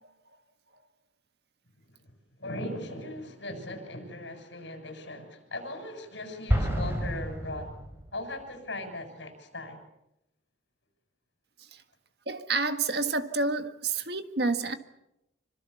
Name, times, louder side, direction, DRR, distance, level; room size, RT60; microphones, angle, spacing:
voice 1, 2.4-7.7 8.1-9.8, left 1 dB, 75° left, 6 dB, 7.2 m, -38 dB
Explosion, 6.5-8.3, equal, 15° right, 5.2 m, -29 dB
voice 2, 12.3-14.8, right 3 dB, 60° right, 8 dB, 1.8 m, -29 dB
26.5 x 25.5 x 7.1 m, 0.85 s
head